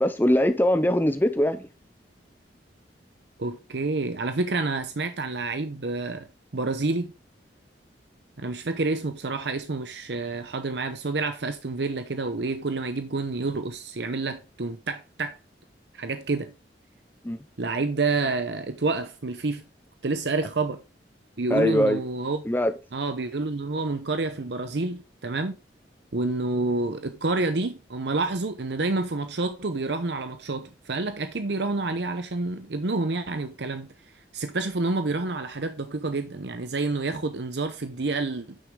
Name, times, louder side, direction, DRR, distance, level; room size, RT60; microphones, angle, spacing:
voice 1, 0.0-1.7 17.2-17.4 21.5-22.0 22.5-22.7, equal, 10° left, 0.5 m, -22 dB
voice 2, 3.4-7.1 8.4-15.4 15.9-16.5 17.6-19.6 20.0-20.8 21.4-22.4 22.9-25.5 26.1-33.9 34.3-38.6, right 3 dB, 75° right, 0.8 m, -28 dB
9.4 x 6.2 x 3.7 m
head